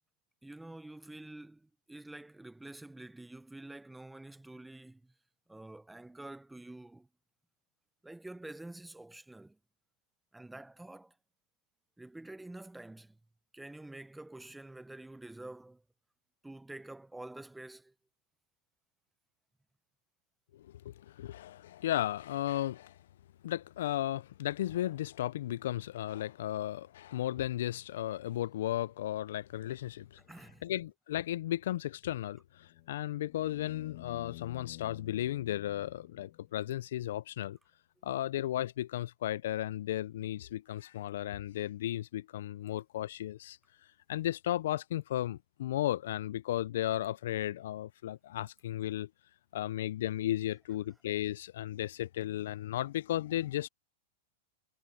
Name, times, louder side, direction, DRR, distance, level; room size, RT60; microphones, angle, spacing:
voice 1, 0.4-5.1 5.5-7.1 8.0-9.6 10.3-11.1 12.0-13.2 13.5-15.8 16.4-17.9 30.2-30.7, right 2 dB, 5° right, 0.7 m, -48 dB
voice 2, 20.5-23.0 23.4-30.2 30.6-37.6 38.0-43.6 44.1-49.1 49.5-53.7, left 13 dB, 75° left, 0.3 m, -35 dB
sound 1, 32.6-36.7 39.1-39.2, left 20 dB, 50° left, 1.4 m, -51 dB
supercardioid pair, 155°, 0 cm